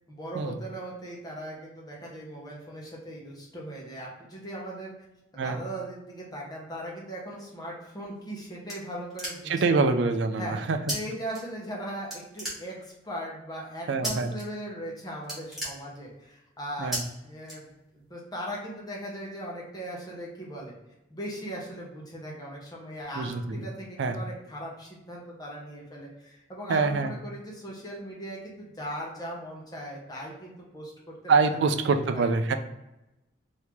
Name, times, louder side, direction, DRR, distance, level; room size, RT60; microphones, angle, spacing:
voice 1, 0.1-4.9 5.3-9.8 10.4-10.6 10.9-17.7 17.9-20.7 21.1-30.9 31.4-31.7 32.1-32.3, right 1 dB, 20° left, -3 dB, 0.9 m, -39 dB
sound 1, 8.0-9.7 10.9-11.0 11.3-11.8 12.1-13.1 14.0-14.4 14.8-14.9 15.2-16.3 16.9-17.0 17.4-18.1, equal, ahead, 1.2 m, -35 dB
voice 2, 9.5-10.8 13.9-14.3 16.8-17.0 23.2-23.7 24.0-24.2 26.7-27.1 31.3-32.6, right 4 dB, 65° right, 8 dB, 0.4 m, -25 dB
3.1 x 2.8 x 3.4 m, 0.94 s
head